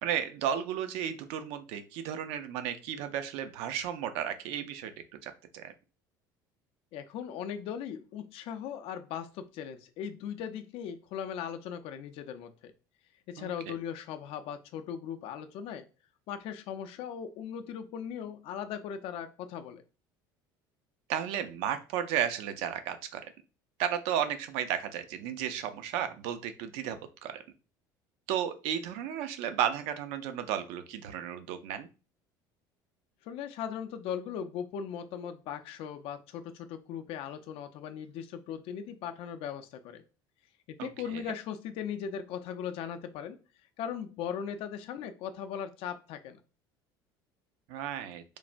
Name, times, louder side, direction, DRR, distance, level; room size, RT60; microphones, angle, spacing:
voice 1, 0.0-4.9 5.2-5.7 13.4-13.7 21.1-23.3 23.8-27.4 28.3-31.9 40.8-41.2 47.7-48.2, right 9 dB, 70° right, 10 dB, 0.4 m, -33 dB
voice 2, 6.9-12.7 13.3-15.9 16.3-19.8 33.2-40.0 40.8-43.4 43.8-46.4, left 8 dB, 60° left, 8 dB, 0.4 m, -38 dB
3.2 x 2.1 x 2.5 m, 0.33 s
hypercardioid pair, 80°, 11 cm